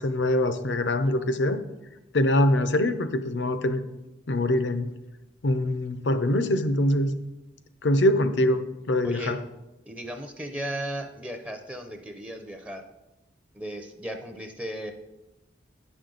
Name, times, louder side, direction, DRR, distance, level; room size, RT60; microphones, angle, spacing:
voice 1, 0.0-1.6 2.1-3.8 4.3-4.9 5.4-7.1 7.8-9.4, left 1 dB, 75° left, 10 dB, 0.6 m, -23 dB
voice 2, 9.9-12.8 13.5-14.9, right 1 dB, 5° right, 5 dB, 0.5 m, -35 dB
9.7 x 6.2 x 3.9 m, 0.98 s
head